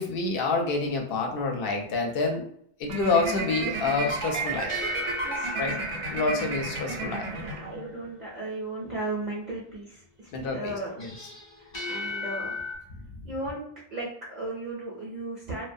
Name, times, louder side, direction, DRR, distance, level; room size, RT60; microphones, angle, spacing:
voice 1, 0.0-2.4 2.8-4.7 5.6-5.8 6.1-7.3 10.3-11.1 13.2-13.3, left 3 dB, 65° left, 1 dB, 0.7 m, -28 dB
sound 1, 2.9-8.1, right 4 dB, 80° right, 0.8 m, -32 dB
sound 2, 3.9-7.4 11.0-12.8, left 3 dB, 35° left, 0.5 m, -36 dB
voice 2, 5.2-5.8 7.3-10.9 11.6-12.8 13.2-13.6 13.9-15.7, right 2 dB, 50° right, -5 dB, 0.6 m, -36 dB
2.3 x 2.1 x 2.5 m, 0.66 s
omnidirectional pair, 1.1 m